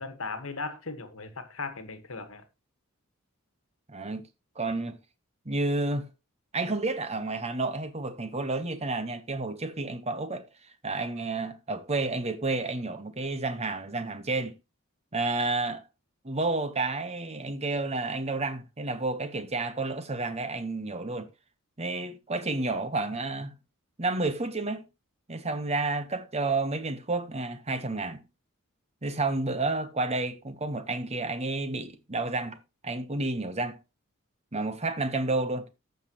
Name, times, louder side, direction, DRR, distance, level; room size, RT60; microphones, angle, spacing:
voice 1, 0.0-2.4, left 3 dB, 65° left, 1.5 m, -37 dB
voice 2, 3.9-4.3 4.6-5.0 5.4-6.1 6.5-10.5 10.8-14.5 15.1-15.8 16.2-21.3 21.8-23.5 24.0-24.8 25.3-28.2 29.0-32.6 32.8-33.8 34.5-35.7, right 2 dB, 30° right, 1.0 m, -30 dB
14.5 x 5.8 x 3.0 m
head